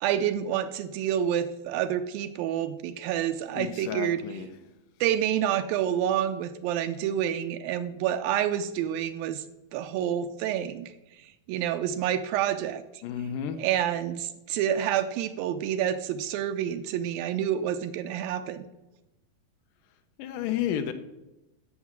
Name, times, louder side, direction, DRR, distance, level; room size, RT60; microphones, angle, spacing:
voice 1, 0.0-4.2 5.0-9.4 9.7-10.9 11.5-12.8 13.6-18.6, right 10 dB, 80° right, 9 dB, 2.3 m, -28 dB
voice 2, 3.5-4.5 13.0-13.6 20.2-20.9, left 10 dB, 75° left, 10 dB, 2.1 m, -31 dB
14.0 x 6.2 x 7.4 m, 0.97 s
omnidirectional pair, 4.3 m